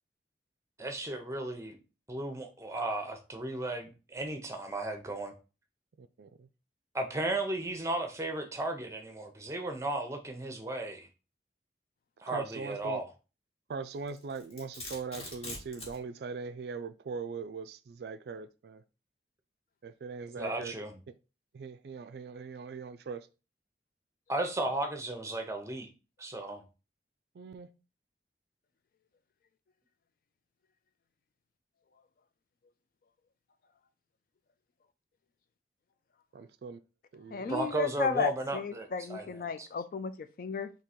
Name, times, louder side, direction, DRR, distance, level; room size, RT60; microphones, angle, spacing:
voice 1, 0.8-1.8 2.1-5.3 6.9-11.1 12.2-13.1 20.4-21.0 24.3-25.9 26.2-26.6 37.5-39.7, right 2 dB, 15° right, 0.6 m, -35 dB
voice 2, 6.0-6.5 12.3-13.0 13.7-18.8 19.8-20.7 21.5-23.3 27.4-27.7 36.3-36.8 37.1-37.5, right 5 dB, 65° right, 0.3 m, -41 dB
Domestic sounds home sounds, 14.1-16.0, left 2 dB, 35° left, 1.2 m, -43 dB
voice 3, 37.3-40.7, left 5 dB, 50° left, 0.3 m, -34 dB
3.7 x 2.8 x 4.3 m
head